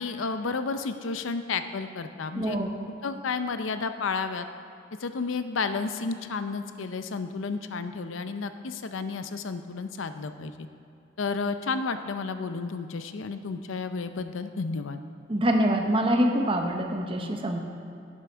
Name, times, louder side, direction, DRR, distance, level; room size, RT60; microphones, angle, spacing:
voice 1, 0.0-2.6 3.0-4.5 5.0-10.7 11.2-15.0, left 4 dB, 80° left, 10 dB, 0.6 m, -32 dB
voice 2, 2.4-2.8 15.3-17.6, right 1 dB, 25° right, 3 dB, 0.9 m, -25 dB
11.0 x 8.3 x 4.5 m, 2.7 s
head